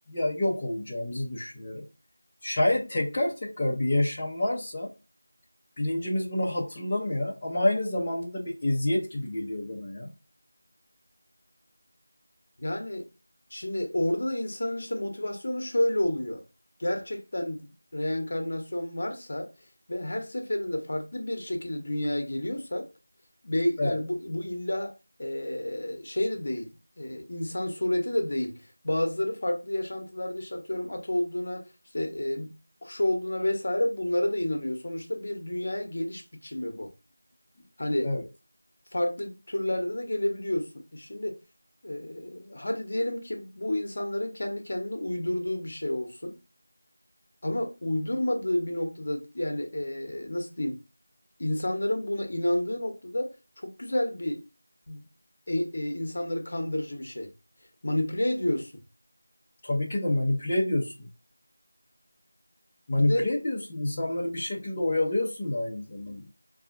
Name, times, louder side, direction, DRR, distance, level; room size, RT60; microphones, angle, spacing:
voice 1, 0.1-1.8 2.4-4.9 5.8-10.1 23.8-24.0 38.0-38.3 59.6-61.1 62.9-66.3, left 1 dB, 20° left, 0.6 m, -28 dB
voice 2, 12.6-13.1 13.5-16.4 16.8-19.5 19.9-22.9 23.4-24.9 25.2-26.7 27.0-31.7 31.9-32.5 32.8-36.9 37.8-38.1 38.9-41.4 41.8-46.3 47.4-50.8 51.4-54.5 54.9-55.0 55.5-57.3 57.8-58.7 62.9-63.3, left 1 dB, 50° left, 0.9 m, -30 dB
4.8 x 2.7 x 2.4 m
figure-of-eight pair, 175°, 0 cm